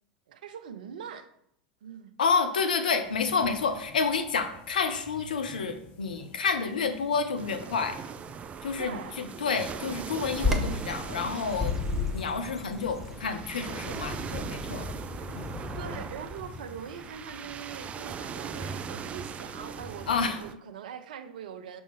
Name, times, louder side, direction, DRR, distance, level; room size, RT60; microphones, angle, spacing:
voice 1, 0.3-1.3 1.8-2.1 8.8-9.2 15.8-21.8, right 8 dB, 70° right, 0.6 m, -42 dB
voice 2, 2.2-8.0 8.6-14.9 15.3-15.6 20.1-20.4, left 5 dB, 80° left, 0.7 m, -29 dB
sound 1, 3.0-20.2, equal, 40° left, 1.3 m, -49 dB
sound 2, 7.4-20.5, right 7 dB, 30° right, 0.4 m, -40 dB
Bird vocalization bird call bird song, 10.3-16.0, left 3 dB, 5° right, 0.9 m, -33 dB
6.3 x 5.6 x 3.1 m
hypercardioid pair, 90°, 5 cm